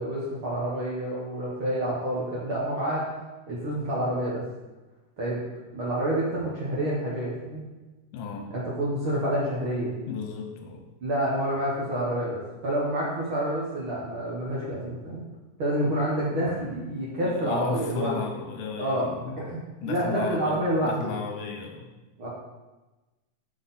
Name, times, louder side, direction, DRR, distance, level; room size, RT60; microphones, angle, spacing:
voice 1, 0.0-3.1 3.5-4.4 5.2-5.4 5.7-7.6 8.5-9.9 11.0-15.2 15.6-18.1 18.8-19.1 19.4-19.6 19.9-21.1 22.2-22.3, right 1 dB, 55° right, -7 dB, 1.5 m, -28 dB
voice 2, 8.1-8.5 10.1-10.8 15.8-16.1 17.2-19.4 19.8-21.9, left 5 dB, 80° left, 2 dB, 2.4 m, -35 dB
5.9 x 5.8 x 4.1 m, 1.1 s
omnidirectional pair, 3.8 m